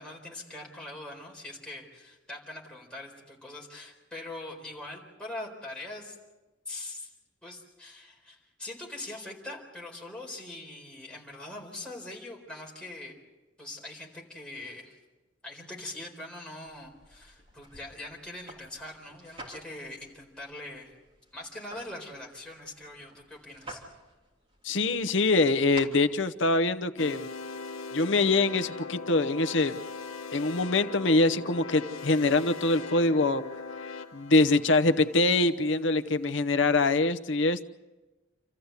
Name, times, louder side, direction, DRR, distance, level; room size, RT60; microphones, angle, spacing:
voice 1, 0.0-6.2 6.7-7.1 7.4-13.2 13.6-15.0 15.4-21.0 21.3-23.8, left 2 dB, 5° left, -3 dB, 4.3 m, -42 dB
sound 1, 16.7-26.6, right 1 dB, 30° right, 3.3 m, -50 dB
voice 2, 24.6-27.2 27.9-29.7 30.3-33.4 34.1-37.6, left 2 dB, 70° left, 10 dB, 0.9 m, -24 dB
sound 2, 27.0-35.9, left 4 dB, 85° left, 1.4 m, -40 dB
28.5 x 14.0 x 8.3 m, 1.1 s
head